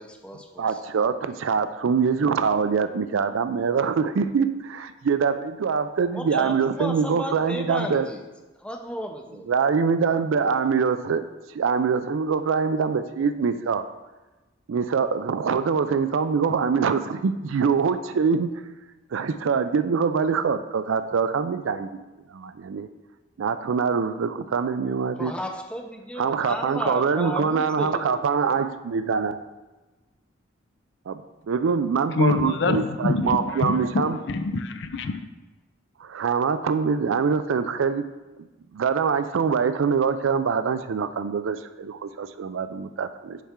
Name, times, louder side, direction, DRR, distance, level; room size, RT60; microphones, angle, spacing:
voice 1, 0.0-0.6 6.1-8.2 8.6-9.5 25.2-28.2, equal, 5° left, 3 dB, 0.5 m, -34 dB
voice 2, 0.6-8.1 9.5-11.2 11.5-13.9 14.7-18.5 19.1-22.0 22.3-22.9 23.4-25.3 26.2-29.4 31.1-34.2 36.0-38.1 38.7-43.4, right 5 dB, 70° right, 12 dB, 0.4 m, -24 dB
voice 3, 32.2-35.2, left 3 dB, 55° left, 9 dB, 0.5 m, -25 dB
7.1 x 5.6 x 3.7 m, 1.1 s
head